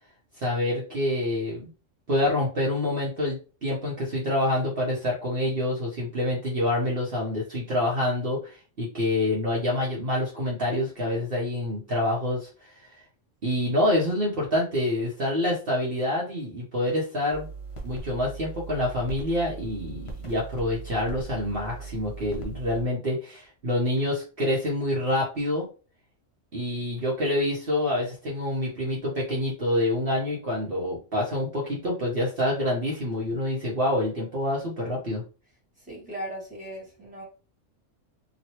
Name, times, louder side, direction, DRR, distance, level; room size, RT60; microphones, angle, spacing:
voice 1, 0.4-1.6 2.1-12.9 13.4-17.5 17.8-25.7 26.5-35.2, left 1 dB, 50° right, 1.1 m, -27 dB
sound 1, 17.3-22.8, right 4 dB, 30° left, 0.6 m, -39 dB
voice 2, 35.9-37.2, right 1 dB, 5° right, 1.5 m, -37 dB
3.1 x 2.5 x 2.8 m
omnidirectional pair, 1.3 m